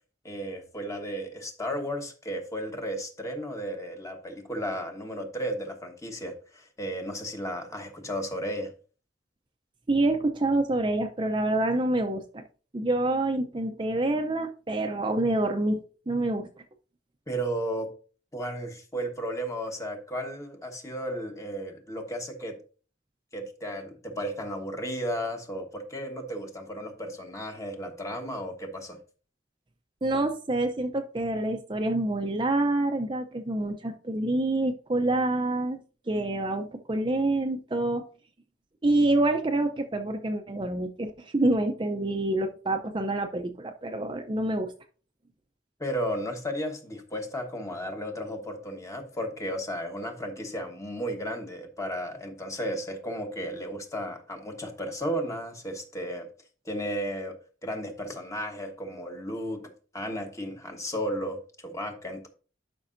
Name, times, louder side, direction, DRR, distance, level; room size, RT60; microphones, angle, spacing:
voice 1, 0.2-8.7 17.3-17.9 18.3-22.6 23.3-29.0 45.8-56.3 56.6-62.3, equal, 15° left, 1.1 m, -34 dB
voice 2, 9.9-12.4 12.7-15.8 16.1-16.5 30.0-35.8 36.1-38.0 38.8-44.7, right 2 dB, 25° right, 0.6 m, -27 dB
11.5 x 5.4 x 2.6 m
head